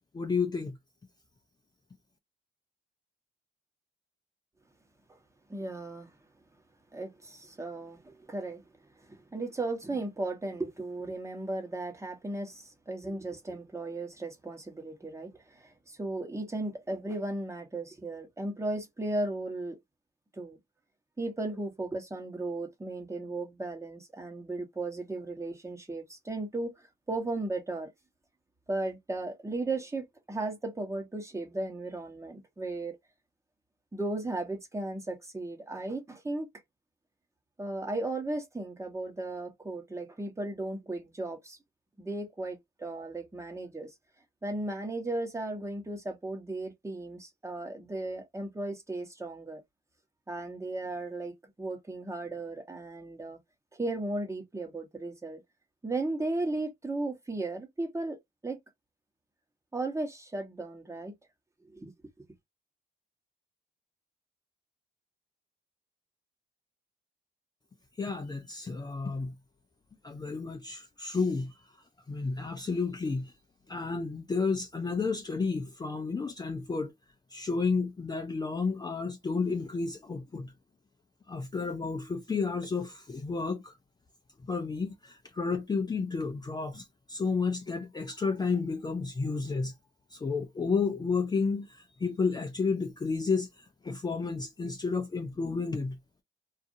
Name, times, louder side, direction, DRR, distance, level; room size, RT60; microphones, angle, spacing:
voice 1, 0.1-0.8 68.0-69.3 70.0-71.5 72.1-73.3 73.7-76.9 77.3-80.5 81.3-83.7 84.5-89.7 90.1-91.7 92.0-93.5 93.8-96.0, left 4 dB, 20° left, 0.5 m, -31 dB
voice 2, 5.5-6.1 6.9-8.6 9.0-19.8 20.3-20.6 21.2-27.9 28.7-33.0 33.9-36.5 37.6-41.6 42.0-43.9 44.4-49.6 50.3-53.4 53.7-55.4 55.8-58.2 58.4-58.6 59.7-61.1 61.7-61.9 62.2-62.3, right 2 dB, 15° right, 1.0 m, -36 dB
2.7 x 2.4 x 2.6 m
cardioid pair, 90°, 20 cm